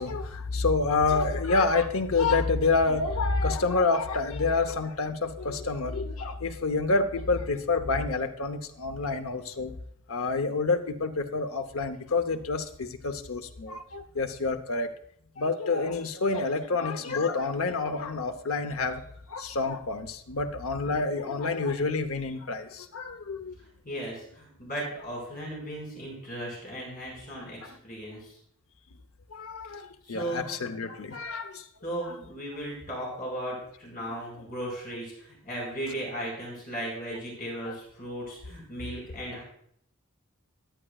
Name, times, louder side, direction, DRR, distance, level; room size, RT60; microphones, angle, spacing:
voice 1, 0.0-9.7 10.1-14.9 15.4-19.0 19.3-23.5 27.4-27.8 29.3-31.6 32.1-32.2 37.6-37.7, left 3 dB, 85° left, 8 dB, 0.8 m, -28 dB
voice 2, 23.8-28.3 30.0-30.4 31.8-39.4, right 1 dB, 45° left, -3 dB, 4.9 m, -36 dB
14.0 x 10.0 x 2.4 m, 0.68 s
head